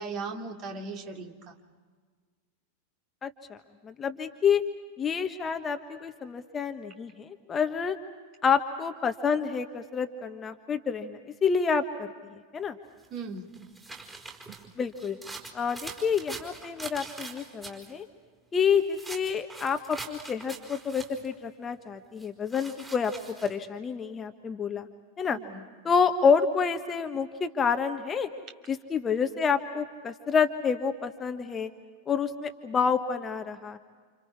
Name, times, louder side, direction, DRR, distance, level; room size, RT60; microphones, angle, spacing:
voice 1, 0.0-1.5 13.1-13.5 25.3-25.6, right 4 dB, 35° right, 3 dB, 2.7 m, -38 dB
voice 2, 3.2-3.6 3.8-4.6 5.0-8.0 8.4-12.7 14.8-15.2 15.5-18.1 18.5-23.1 23.4-24.9 25.2-25.4 25.8-28.3 28.7-31.7 32.1-33.8, left 6 dB, 20° left, 7 dB, 1.3 m, -28 dB
sound 1, 13.0-17.9 18.6-21.3 22.2-23.5, right 3 dB, 15° right, 4.7 m, -43 dB
30.0 x 28.5 x 4.8 m, 1.5 s
figure-of-eight pair, 90°, 0 cm